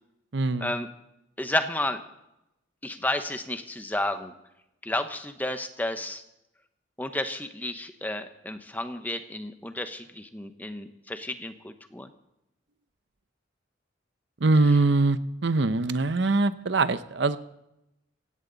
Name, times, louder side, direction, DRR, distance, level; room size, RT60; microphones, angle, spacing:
voice 1, 0.3-0.7 14.4-17.4, right 3 dB, 65° right, 13 dB, 0.7 m, -23 dB
voice 2, 1.4-2.0 2.8-4.3 4.8-6.2 7.0-12.1 14.7-14.8, left 1 dB, 10° left, 8 dB, 0.9 m, -31 dB
17.0 x 16.0 x 4.0 m, 0.86 s
head